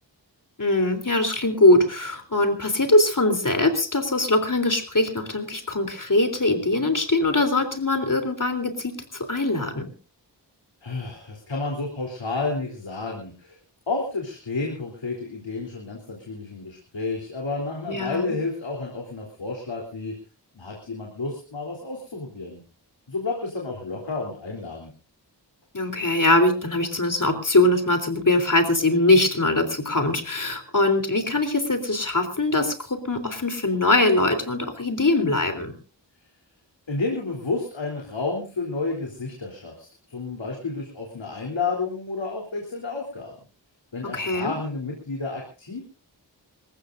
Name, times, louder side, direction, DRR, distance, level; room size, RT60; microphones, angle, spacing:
voice 1, 0.6-9.9 17.9-18.4 25.7-35.7 44.0-44.6, left 2 dB, 45° left, 7 dB, 3.5 m, -22 dB
voice 2, 10.8-13.6 13.9-20.1 20.6-22.6 23.1-24.9 36.9-43.3 43.9-45.8, left 3 dB, 90° left, -1 dB, 3.6 m, -31 dB
26.5 x 15.0 x 2.6 m, 0.36 s
wide cardioid pair, 55°, 43 cm